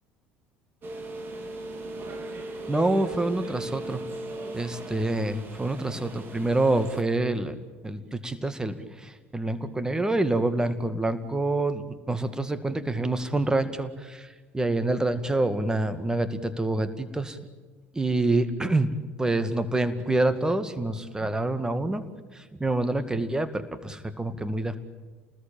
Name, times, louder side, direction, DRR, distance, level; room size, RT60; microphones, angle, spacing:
sound 1, 0.8-7.0, right 2 dB, 35° right, 3.4 m, -38 dB
voice 1, 2.7-4.0 4.5-7.5 7.8-8.8 9.0-14.3 14.5-17.4 17.9-18.9 19.2-22.0 22.6-24.8, right 2 dB, 10° right, 10 dB, 2.1 m, -26 dB
28.5 x 20.0 x 9.0 m, 1.3 s
figure-of-eight pair, 60°, 6 cm